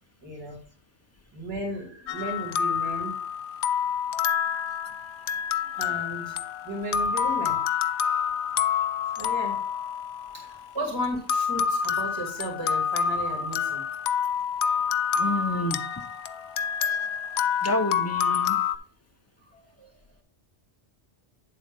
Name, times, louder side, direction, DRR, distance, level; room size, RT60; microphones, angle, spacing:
voice 1, 0.2-0.6 1.3-3.2 5.7-7.7 8.7-8.8 9.2-9.6 10.3-13.8 19.5-19.9, equal, 20° right, -1 dB, 2.8 m, -35 dB
sound 1, 2.1-10.7 11.3-18.8, left 7 dB, 80° left, 0.8 m, -27 dB
voice 2, 15.1-15.8 17.6-18.6, left 1 dB, 15° left, 4 dB, 0.7 m, -28 dB
9.5 x 3.9 x 5.4 m, 0.40 s
omnidirectional pair, 1.1 m